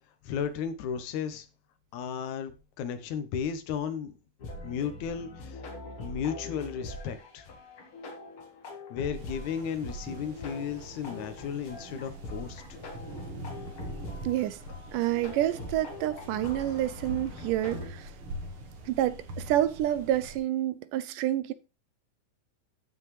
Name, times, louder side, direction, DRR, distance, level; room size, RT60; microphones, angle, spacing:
voice 1, 0.2-1.5 1.9-4.1 4.6-5.6 6.0-7.5 8.9-12.6, left 7 dB, 65° left, 2.2 m, -34 dB
sound 1, 4.4-17.9, left 1 dB, 50° left, 2.0 m, -43 dB
sound 2, 9.1-20.4, right 1 dB, 50° right, 1.7 m, -43 dB
voice 2, 14.2-14.6 14.9-18.1 18.8-21.5, right 13 dB, 80° right, 2.0 m, -28 dB
14.0 x 5.8 x 3.2 m
omnidirectional pair, 4.0 m